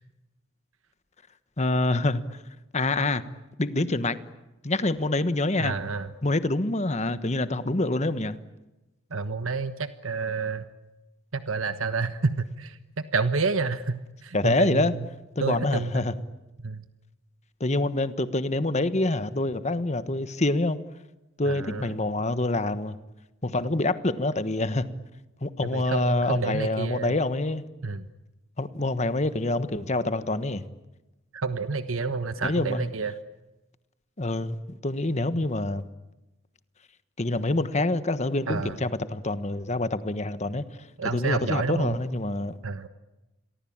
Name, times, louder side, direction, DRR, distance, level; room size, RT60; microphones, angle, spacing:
voice 1, 1.6-2.4 2.7-3.2 3.6-4.2 4.6-5.7 6.2-8.4 14.3-14.9 15.3-16.1 17.6-20.8 21.4-23.0 23.4-24.9 25.4-27.6 28.6-30.7 32.4-32.9 34.2-35.8 37.2-40.6 41.0-42.6, left 2 dB, 35° left, 1.3 m, -26 dB
voice 2, 5.6-6.1 9.1-10.7 11.3-12.8 13.1-15.0 15.4-16.1 16.6-16.8 21.4-21.9 25.7-27.2 27.8-28.1 31.3-33.1 38.5-38.7 41.0-42.0 42.6-42.9, right 4 dB, 90° right, 1.3 m, -29 dB
29.5 x 23.0 x 8.8 m
head